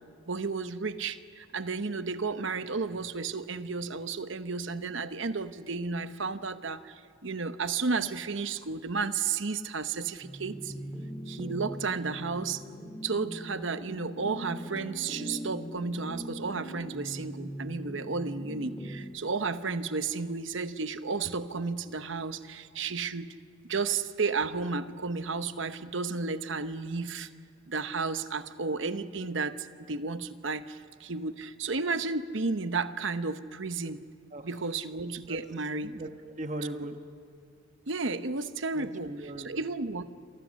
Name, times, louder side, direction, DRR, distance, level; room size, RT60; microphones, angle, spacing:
voice 1, 0.3-10.7 11.3-12.6 13.0-23.3 23.6-27.3 27.7-34.0 34.4-35.9 36.7-36.8 37.9-39.1 39.4-40.0, right 4 dB, 70° right, 11 dB, 1.0 m, -33 dB
sound 1, 10.2-19.0, equal, 5° left, 2.5 m, -41 dB
voice 2, 35.8-36.9 38.7-39.6, right 1 dB, 35° right, 6 dB, 1.2 m, -39 dB
27.5 x 27.5 x 6.5 m, 2.2 s
head